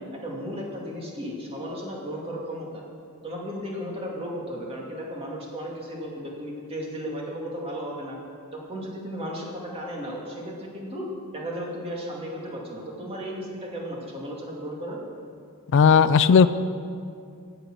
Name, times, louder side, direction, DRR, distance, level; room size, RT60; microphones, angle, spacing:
voice 1, 0.2-2.8 3.2-8.2 8.5-11.0 11.3-15.0, equal, 25° right, -3 dB, 2.4 m, -35 dB
voice 2, 15.7-16.5, left 6 dB, 55° left, 13 dB, 0.4 m, -15 dB
17.0 x 6.9 x 6.1 m, 2.4 s
head